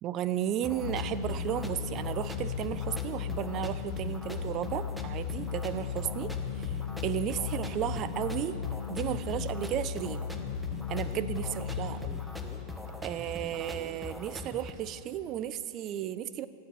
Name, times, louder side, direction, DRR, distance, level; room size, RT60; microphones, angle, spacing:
voice 1, 0.0-6.8 7.0-8.6 8.9-10.3 10.9-12.2 13.0-16.5, right 11 dB, 35° right, 14 dB, 0.3 m, -34 dB
sound 1, 0.6-14.7, left 1 dB, ahead, 0.8 m, -42 dB
sound 2, 0.8-14.1, left 8 dB, 65° left, 0.4 m, -36 dB
11.5 x 9.1 x 5.7 m, 2.7 s
figure-of-eight pair, 90°, 0 cm